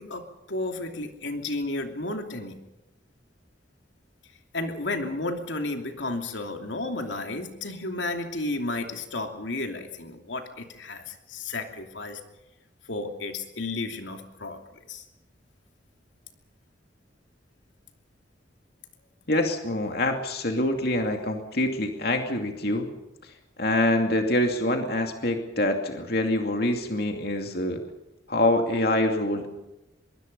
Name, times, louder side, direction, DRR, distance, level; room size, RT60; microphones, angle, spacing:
voice 1, 0.0-2.6 4.5-12.2 12.9-14.6 14.9-15.1, left 2 dB, 80° left, 4 dB, 2.8 m, -32 dB
voice 2, 19.3-22.9 23.6-27.8 28.3-29.5, left 1 dB, 55° left, 4 dB, 2.6 m, -25 dB
24.5 x 23.0 x 5.5 m, 0.92 s
head